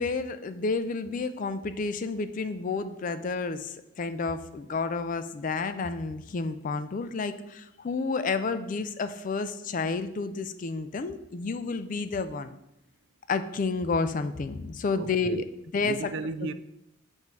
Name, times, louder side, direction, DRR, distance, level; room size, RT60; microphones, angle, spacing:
voice 1, 0.0-12.5 13.3-15.4 15.7-16.1 16.4-16.5, left 4 dB, 40° left, 0.4 m, -30 dB
voice 2, 15.0-15.5 15.8-16.5, right 3 dB, 55° right, 0.3 m, -35 dB
7.4 x 2.7 x 5.9 m
head